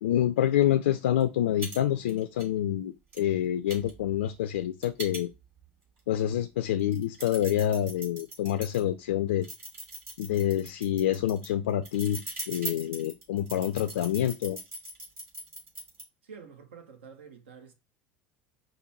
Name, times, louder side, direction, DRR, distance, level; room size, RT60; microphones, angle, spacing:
voice 1, 0.0-5.3 6.1-9.5 10.2-12.2 12.5-14.6, left 11 dB, 70° left, 0.3 m, -27 dB
sound 1, 1.2-1.3 1.6-1.8 2.1-2.5 3.1-3.2 3.7-5.7 6.2-6.3 6.8-8.8 9.4-16.0, right 2 dB, 35° right, 2.8 m, -41 dB
voice 2, 16.2-17.7, right 6 dB, 75° right, 0.9 m, -48 dB
5.2 x 2.2 x 4.1 m
hypercardioid pair, 75°, 6 cm